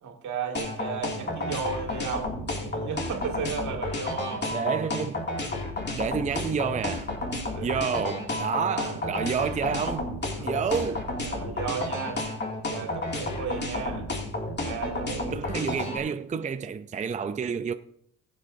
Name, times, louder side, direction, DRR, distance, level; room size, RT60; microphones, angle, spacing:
voice 1, 0.0-4.5 7.4-7.7 8.7-9.0 10.4-10.5 11.2-12.3 12.7-14.1 14.6-15.4, right 6 dB, 75° right, 2.3 m, -34 dB
sound 1, 0.5-16.0, left 2 dB, 35° left, 2.4 m, -31 dB
voice 2, 4.5-5.3 5.9-7.1 7.6-11.1 15.1-17.7, right 6 dB, 25° right, 0.5 m, -29 dB
20.0 x 7.7 x 2.7 m
cardioid pair, 90°, 30 cm